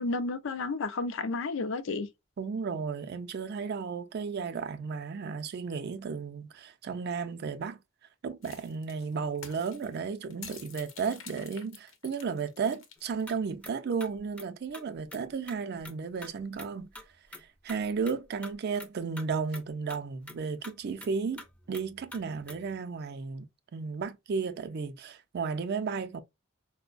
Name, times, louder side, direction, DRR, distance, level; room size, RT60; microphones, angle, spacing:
voice 1, 0.0-2.1, left 3 dB, 70° left, 0.4 m, -31 dB
voice 2, 2.4-7.8 8.2-16.9 17.3-26.2, right 5 dB, 55° right, 0.4 m, -34 dB
sound 1, 8.4-13.4, left 6 dB, 90° left, 0.8 m, -48 dB
sound 2, 13.0-13.3 13.6-13.7 14.0-15.2 15.5-16.0 16.2-16.7 17.0-18.9 19.2-19.3 19.5-19.6 19.9-22.8, left 1 dB, 5° left, 0.4 m, -47 dB
4.3 x 2.1 x 2.4 m
head